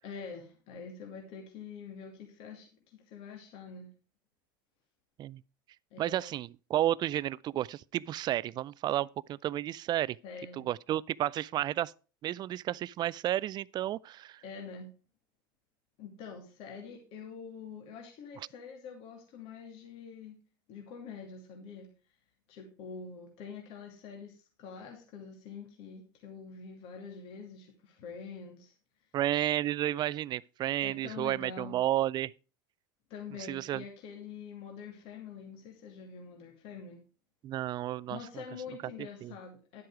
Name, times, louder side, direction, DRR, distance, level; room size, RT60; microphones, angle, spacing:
voice 1, 0.0-3.9 5.9-6.3 10.2-10.7 14.4-14.9 16.0-20.4 20.7-21.9 22.5-28.7 30.8-31.8 33.1-37.0 38.1-39.8, left 6 dB, 55° left, 2.6 m, -45 dB
voice 2, 6.0-10.2 10.7-11.9 12.2-14.4 29.1-32.3 33.5-33.8 37.4-38.4 39.2-39.3, right 13 dB, 40° right, 0.4 m, -32 dB
11.0 x 7.8 x 4.7 m
supercardioid pair, 100°, 11 cm